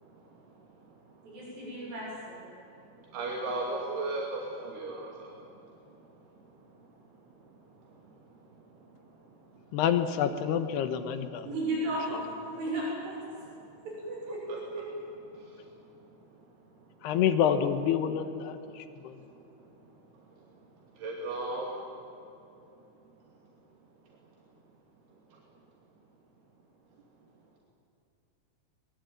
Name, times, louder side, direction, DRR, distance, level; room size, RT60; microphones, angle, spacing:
voice 1, 0.0-1.9 2.5-9.8 11.2-11.5 12.5-12.6 13.3-13.9 14.5-14.8 15.3-17.2 18.5-22.3 22.6-22.7 23.2-23.5 24.0-24.3 25.3-25.4, right 2 dB, 80° right, -2 dB, 4.7 m, -42 dB
voice 2, 1.2-2.4 11.4-13.2 13.8-14.9, right 1 dB, 60° right, -4 dB, 8.8 m, -35 dB
voice 3, 9.7-11.5 17.0-18.8, left 8 dB, 85° left, 9 dB, 3.4 m, -27 dB
23.0 x 22.0 x 9.3 m, 2.9 s
omnidirectional pair, 4.6 m